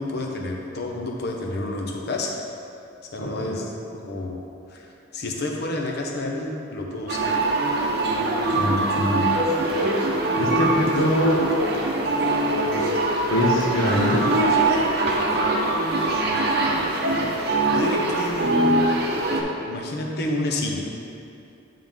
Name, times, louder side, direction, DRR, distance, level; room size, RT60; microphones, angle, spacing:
voice 1, 0.0-2.4 3.1-3.7 3.9-4.4 4.7-4.9 5.1-7.3 17.7-19.0 19.7-20.9, left 2 dB, 50° left, 1 dB, 0.7 m, -29 dB
voice 2, 3.2-3.6 8.5-9.2 10.4-11.4 13.3-14.3, left 1 dB, 80° left, -1 dB, 1.0 m, -23 dB
sound 1, 7.1-19.4, right 2 dB, 50° right, 0.7 m, -22 dB
9.1 x 3.7 x 3.5 m, 2.6 s
head